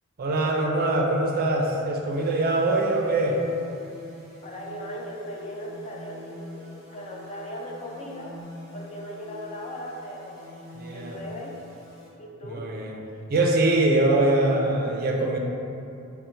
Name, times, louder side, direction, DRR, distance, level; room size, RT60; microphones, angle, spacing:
voice 1, 0.2-3.4 10.7-11.2 12.4-13.0 13.3-15.4, right 2 dB, 45° right, 0 dB, 0.4 m, -23 dB
sound 1, 2.1-12.1, left 1 dB, 5° right, 1.4 m, -45 dB
voice 2, 4.4-6.7 6.9-8.3 8.7-10.5 10.9-11.5 12.2-12.7, equal, 30° left, -2 dB, 0.4 m, -38 dB
3.9 x 2.1 x 4.4 m, 2.8 s
head